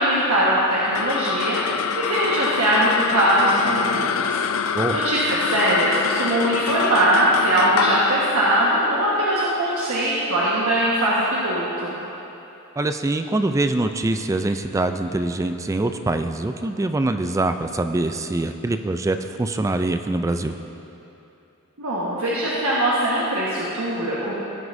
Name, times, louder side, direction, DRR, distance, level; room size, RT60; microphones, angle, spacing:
voice 1, 0.0-4.4 4.9-12.0 21.8-24.3, right 1 dB, 85° right, -7 dB, 1.4 m, -21 dB
sound 1, 0.7-11.3, left 7 dB, 75° left, 0.4 m, -26 dB
voice 2, 12.8-20.6, right 2 dB, 15° right, 8 dB, 0.3 m, -24 dB
17.5 x 9.5 x 2.6 m, 2.9 s
head